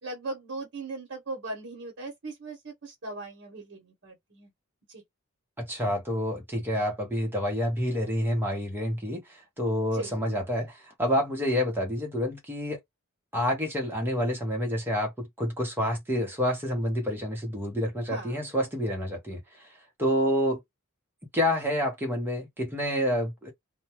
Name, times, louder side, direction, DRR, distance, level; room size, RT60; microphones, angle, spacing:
voice 1, 0.0-4.5 4.9-5.0 9.9-10.1 18.1-18.4, right 2 dB, 55° right, 0.9 m, -38 dB
voice 2, 5.6-12.8 13.3-19.4 20.0-20.6 21.3-23.5, equal, 10° right, 0.8 m, -28 dB
2.2 x 2.1 x 2.9 m
head